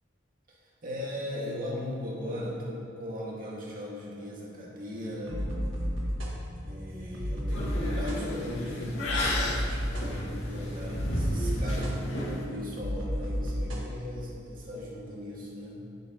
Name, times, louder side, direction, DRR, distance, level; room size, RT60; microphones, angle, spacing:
voice 1, 0.5-5.4 6.6-15.8, left 1 dB, 45° right, -5 dB, 2.1 m, -38 dB
sound 1, 5.3-13.8, equal, 90° right, 1.9 m, -33 dB
sound 2, 7.5-12.4, left 1 dB, 90° left, 2.4 m, -33 dB
10.0 x 9.0 x 3.1 m, 2.5 s
head